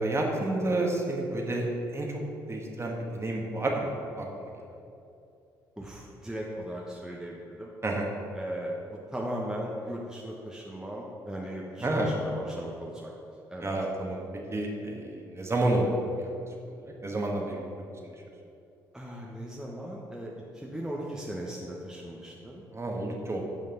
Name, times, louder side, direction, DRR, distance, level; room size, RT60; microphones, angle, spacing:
voice 1, 0.0-1.6 1.9-2.2 2.5-4.5 7.8-8.1 11.8-12.1 13.6-14.2 14.5-15.9 16.1-16.3 17.0-17.7 22.7-23.5, right 2 dB, 25° right, 0 dB, 1.7 m, -30 dB
voice 2, 5.8-7.7 8.3-13.1 13.5-13.7 18.9-22.6, equal, 5° right, -3 dB, 1.3 m, -38 dB
15.0 x 5.3 x 3.9 m, 2.7 s
figure-of-eight pair, 45°, 11 cm